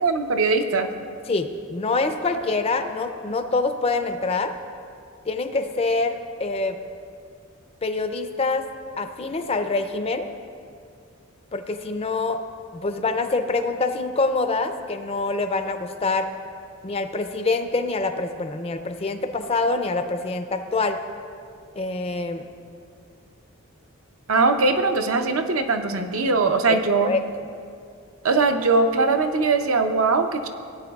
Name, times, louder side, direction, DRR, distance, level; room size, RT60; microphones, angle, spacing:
voice 1, 0.0-0.9 24.3-27.1 28.2-30.5, right 3 dB, 75° right, 6 dB, 0.7 m, -21 dB
voice 2, 1.3-4.5 5.3-6.8 7.8-8.6 9.0-10.2 11.5-12.4 12.7-16.3 16.8-21.0 21.8-22.4 27.0-27.2, left 3 dB, 25° left, 8 dB, 0.4 m, -25 dB
17.0 x 9.1 x 2.4 m, 2.3 s
head